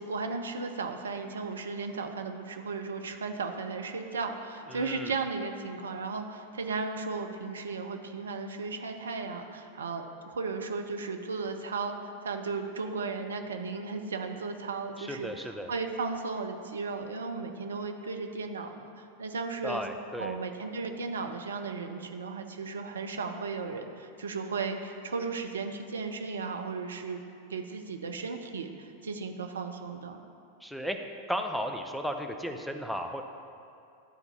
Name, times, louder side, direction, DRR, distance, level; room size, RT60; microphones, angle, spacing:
voice 1, 0.0-19.8 20.2-27.2 27.5-30.2, right 4 dB, 70° right, 5 dB, 0.6 m, -35 dB
voice 2, 4.7-5.1 15.0-15.7 19.6-20.3 30.6-31.0 31.3-33.2, equal, ahead, 5 dB, 0.5 m, -34 dB
11.5 x 3.9 x 5.7 m, 2.5 s
figure-of-eight pair, 90°, 0 cm